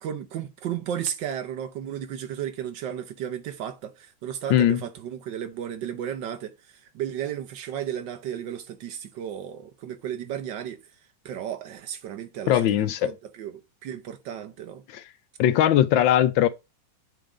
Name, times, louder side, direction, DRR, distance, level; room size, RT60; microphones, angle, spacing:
voice 1, 0.0-10.9 11.2-14.8, right 9 dB, 65° right, 1.3 m, -34 dB
voice 2, 12.5-13.1 14.9-15.0 15.4-16.5, left 11 dB, 75° left, 1.3 m, -20 dB
7.8 x 3.6 x 4.8 m
omnidirectional pair, 2.2 m